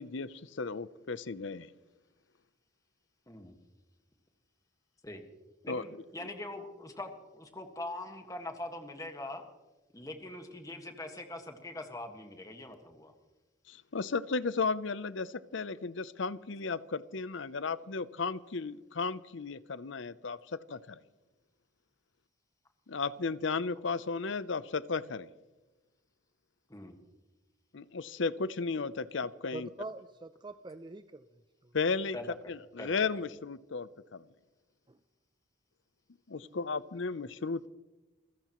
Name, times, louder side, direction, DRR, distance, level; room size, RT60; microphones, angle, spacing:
voice 1, 0.0-1.7 5.7-5.8 13.7-21.0 22.9-25.3 27.7-29.7 31.7-32.2 32.5-34.2 36.3-37.7, left 4 dB, 65° left, 0.6 m, -34 dB
voice 2, 5.6-9.4 9.9-13.1 26.7-26.9 32.1-32.3 32.8-32.9, left 2 dB, 15° left, 1.6 m, -42 dB
voice 3, 29.5-31.2 31.6-31.7 34.9-35.0 36.4-36.6, right 3 dB, 20° right, 0.4 m, -44 dB
27.5 x 16.0 x 3.1 m
head